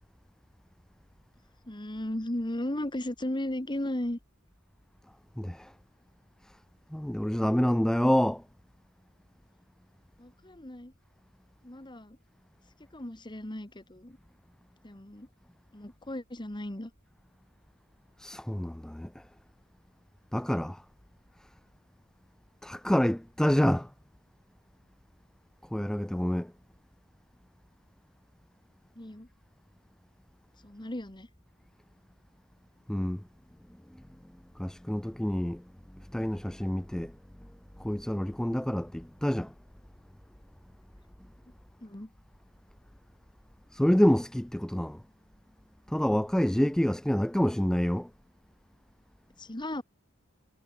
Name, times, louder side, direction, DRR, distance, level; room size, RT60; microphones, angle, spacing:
voice 1, 1.7-4.2 10.2-10.9 11.6-12.2 12.9-14.2 14.8-15.3 15.7-16.9 29.0-29.3 30.6-31.3 41.8-42.1 49.4-49.8, left 1 dB, 20° left, 1.7 m, -36 dB
voice 2, 5.4-5.7 6.9-8.4 18.2-19.2 20.3-20.8 22.6-23.9 25.7-26.5 32.9-33.2 34.6-35.6 35.9-37.2 37.8-39.5 43.7-45.0 45.9-48.1, equal, 5° left, 0.3 m, -27 dB
head